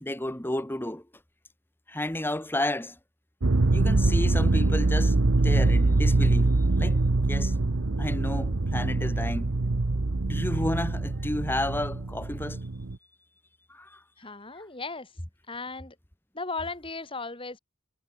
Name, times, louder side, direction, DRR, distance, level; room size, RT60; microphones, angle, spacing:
voice 1, 0.0-1.0 1.9-3.0 3.7-5.2 5.4-7.0 7.3-7.5 8.0-9.6 10.2-12.6 13.7-14.0, left 1 dB, 10° left, 1.3 m, -32 dB
sound 1, 3.4-13.0, right 2 dB, 80° right, 1.0 m, -24 dB
voice 2, 14.2-15.1 15.5-16.0 16.3-17.6, left 3 dB, 25° left, 3.5 m, -36 dB
head